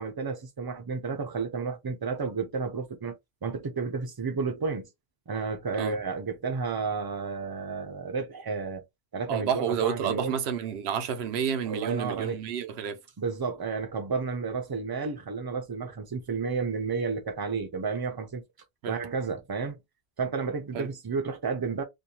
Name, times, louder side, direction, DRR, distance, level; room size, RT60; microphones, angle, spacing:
voice 1, 0.0-3.1 3.4-4.9 5.3-8.8 9.1-10.4 11.7-12.4 13.2-18.4 18.9-19.8 20.2-21.8, right 5 dB, 35° right, 0.4 m, -31 dB
voice 2, 9.3-13.0 18.8-19.0 20.7-20.9, right 8 dB, 90° right, 0.8 m, -30 dB
2.6 x 2.2 x 2.8 m
omnidirectional pair, 1.0 m